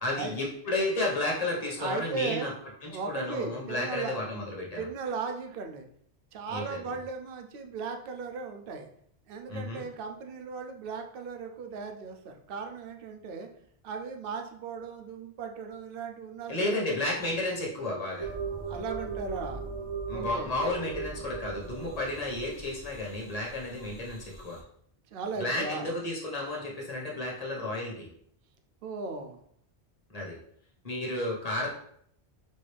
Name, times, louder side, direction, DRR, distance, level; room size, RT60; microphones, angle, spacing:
voice 1, 0.0-2.5 2.8-4.9 6.5-6.8 9.5-9.8 16.5-18.3 20.1-24.6 25.4-28.1 30.1-30.4 30.8-31.7, left 2 dB, 35° left, -3 dB, 1.2 m, -32 dB
voice 2, 1.8-2.5 2.9-4.2 4.8-5.9 6.3-8.9 9.3-13.5 13.8-16.9 18.5-19.6 20.1-20.5 25.1-25.9 28.8-29.4, right 5 dB, 60° right, 5 dB, 0.8 m, -37 dB
sound 1, 18.2-24.6, right 5 dB, 30° right, 0.7 m, -39 dB
5.4 x 2.6 x 3.3 m, 0.65 s
omnidirectional pair, 1.1 m